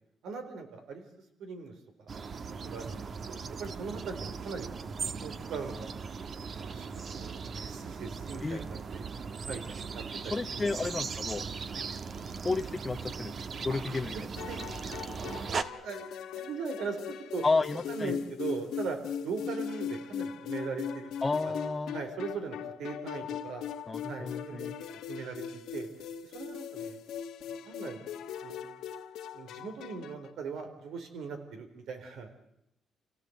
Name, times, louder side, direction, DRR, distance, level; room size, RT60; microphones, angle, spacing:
voice 1, 0.2-1.1 1.4-1.7 2.0-2.1 2.4-5.9 6.6-9.0 9.3-9.6 9.9-10.8 13.7-15.0 15.5-17.4 17.9-19.0 19.2-21.1 21.5-21.6 21.9-23.7 24.0-24.7 25.1-25.9 26.2-27.0 27.5-28.0 28.4-28.7 29.3-32.3, right 5 dB, 80° right, 6 dB, 4.1 m, -40 dB
sound 1, 2.1-15.6, right 5 dB, 50° right, 1.3 m, -38 dB
voice 2, 10.2-11.5 12.4-13.4 13.6-14.1 17.4-18.1 21.2-22.0 23.9-24.7, left 3 dB, 25° left, 4 dB, 0.8 m, -31 dB
sound 2, 14.4-30.3, left 7 dB, 85° left, 1.5 m, -39 dB
28.0 x 17.0 x 8.0 m, 0.82 s
cardioid pair, 90°, 0 cm